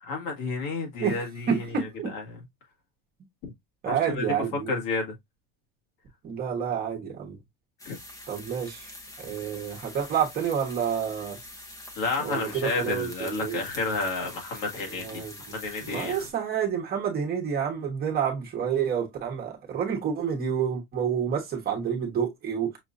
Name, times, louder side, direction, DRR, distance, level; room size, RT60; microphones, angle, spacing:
voice 1, 0.0-1.6 2.1-2.2 3.4-3.5 3.9-4.2 4.7-5.1 7.8-8.0 12.0-15.2 15.5-16.1, left 3 dB, 80° left, 2.0 m, -31 dB
voice 2, 1.5-2.1 3.8-4.8 6.2-7.4 8.3-11.4 12.2-13.6 14.9-22.8, right 7 dB, 30° right, 1.1 m, -29 dB
sound 1, 7.8-16.3, left 1 dB, 10° left, 0.8 m, -44 dB
6.1 x 2.6 x 2.5 m
cardioid pair, 170°, 31 cm